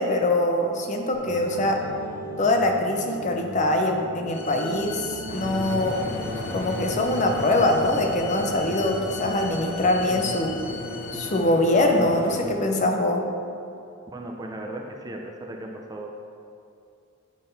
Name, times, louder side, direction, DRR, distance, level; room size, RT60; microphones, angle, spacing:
voice 1, 0.0-1.8 2.4-6.1 6.5-10.6 11.1-13.3, left 1 dB, 35° left, 3 dB, 0.5 m, -23 dB
sound 1, 1.1-8.7, equal, 70° right, 1.4 m, -39 dB
sound 2, 4.3-11.4, left 6 dB, 80° left, 0.6 m, -41 dB
sound 3, 5.3-12.4, left 1 dB, 55° left, 0.9 m, -35 dB
voice 2, 14.1-16.2, right 1 dB, 15° right, 1 dB, 0.4 m, -36 dB
8.7 x 3.8 x 3.9 m, 2.6 s
head